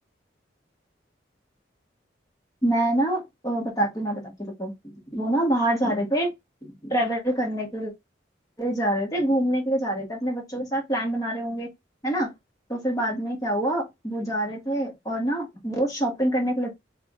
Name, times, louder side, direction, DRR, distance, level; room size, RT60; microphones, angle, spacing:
voice 1, 2.6-4.7 5.1-6.3 6.6-7.9 8.6-11.7 12.0-12.3 12.7-16.7, right 1 dB, 20° left, 1.2 m, -26 dB
3.5 x 2.3 x 3.5 m
head